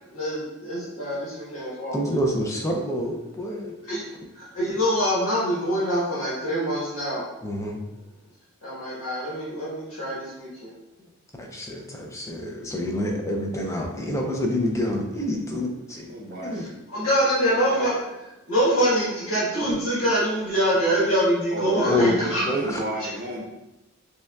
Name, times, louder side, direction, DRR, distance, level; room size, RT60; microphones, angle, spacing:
voice 1, 0.1-2.0 3.9-4.0 4.3-7.2 8.6-10.7 16.9-18.1 18.5-22.4, equal, 70° left, -8 dB, 1.2 m, -24 dB
voice 2, 1.9-3.7 7.4-7.8 11.0-11.1 11.4-16.1 16.4-16.7 21.9-22.2 22.5-22.8, left 1 dB, 15° left, 1 dB, 0.4 m, -27 dB
voice 3, 16.0-16.6 21.5-23.4, right 1 dB, 40° right, -1 dB, 0.7 m, -31 dB
5.3 x 2.2 x 2.3 m, 0.99 s
head